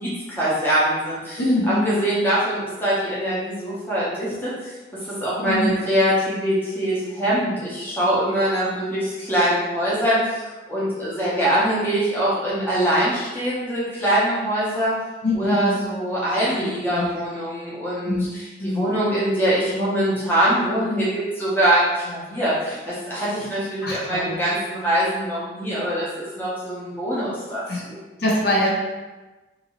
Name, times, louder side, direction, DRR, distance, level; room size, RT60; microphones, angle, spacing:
voice 1, 0.0-1.4 1.8-4.5 5.1-10.4 10.7-14.9 15.3-28.0, right 1 dB, 10° left, -8 dB, 0.8 m, -23 dB
voice 2, 1.4-1.9 5.4-5.8 15.2-15.8 16.9-17.1 18.1-18.3 18.6-18.9 23.8-24.4 27.7-27.8 28.2-28.7, left 1 dB, 55° left, -4 dB, 0.6 m, -23 dB
2.7 x 2.6 x 2.9 m, 1.2 s
head